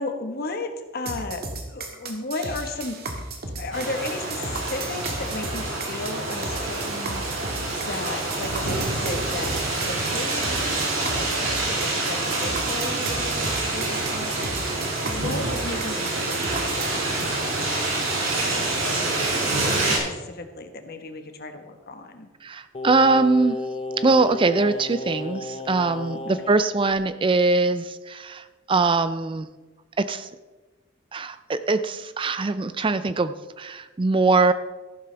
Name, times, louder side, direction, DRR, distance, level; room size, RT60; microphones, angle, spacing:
voice 1, 0.0-3.0 3.6-9.5 9.8-19.2 19.5-22.3 26.3-26.4, left 2 dB, 50° left, 6 dB, 1.3 m, -35 dB
sound 1, 1.1-17.0, right 3 dB, 50° right, 1.7 m, -34 dB
sound 2, 3.7-20.0, right 2 dB, 85° right, 4.5 m, -27 dB
voice 2, 22.4-23.6 24.0-29.5 30.0-30.3 31.1-34.5, right 3 dB, 25° right, 12 dB, 0.4 m, -22 dB
Singing, 22.7-26.6 26.9-27.0, left 2 dB, 30° left, 0.5 m, -33 dB
14.0 x 12.0 x 3.4 m, 1.2 s
head